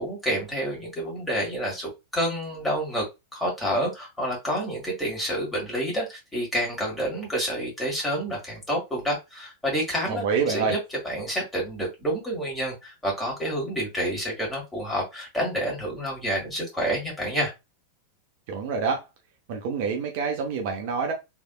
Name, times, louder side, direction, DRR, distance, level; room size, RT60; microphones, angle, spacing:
voice 1, 0.0-3.0 3.3-10.8 11.0-17.5, equal, 10° left, 1.7 m, -28 dB
voice 2, 10.1-10.8 18.5-19.0 19.5-21.1, right 5 dB, 50° right, 0.7 m, -27 dB
3.3 x 2.8 x 2.3 m
figure-of-eight pair, 90°, 0 cm